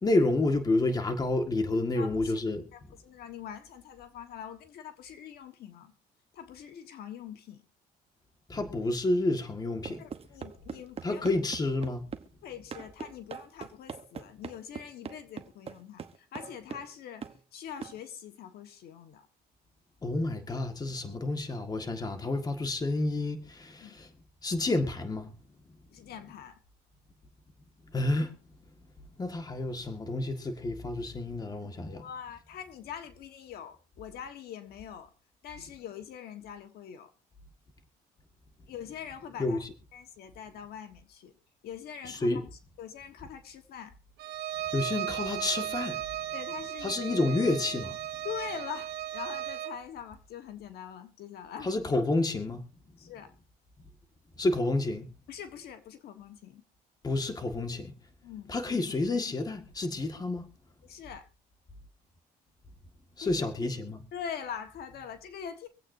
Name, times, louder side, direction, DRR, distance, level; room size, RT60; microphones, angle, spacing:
voice 1, 0.0-2.6 8.5-10.0 11.0-12.0 20.0-24.1 24.4-25.3 27.9-28.3 29.2-32.1 39.4-39.7 42.1-42.5 44.7-46.0 46.8-48.0 51.6-52.6 54.4-55.1 57.0-57.9 58.5-60.5 63.2-64.0, left 2 dB, 25° left, 1.8 m, -29 dB
voice 2, 1.9-2.4 2.7-5.9 6.3-7.6 10.0-11.3 12.4-17.2 17.5-19.2 23.8-23.9 25.9-26.6 31.9-35.1 35.4-37.1 38.7-39.6 39.9-41.3 41.6-42.4 42.8-43.9 46.3-47.0 48.2-51.7 53.0-53.3 55.3-56.6 58.2-58.5 60.8-61.3 63.2-63.4 64.1-65.7, left 8 dB, 70° left, 1.4 m, -43 dB
sound 1, 9.8-12.3 12.7-16.9 17.2-17.4 17.8-18.0, right 6 dB, 35° right, 1.1 m, -42 dB
Bowed string instrument, 44.2-49.8, right 13 dB, 75° right, 1.2 m, -36 dB
25.0 x 8.4 x 2.7 m
cardioid pair, 110°, 17 cm